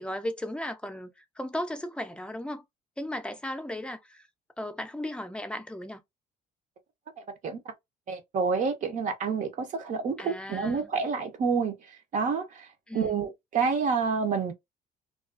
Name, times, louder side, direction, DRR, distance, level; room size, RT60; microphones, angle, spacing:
voice 1, 0.0-2.6 3.0-4.3 4.6-6.0 10.2-10.9 12.9-13.3, left 1 dB, 5° left, 0.5 m, -36 dB
voice 2, 8.1-11.7 12.1-12.7 12.9-14.5, right 5 dB, 50° right, 0.6 m, -28 dB
2.4 x 2.3 x 2.4 m
cardioid pair, 110°, 17 cm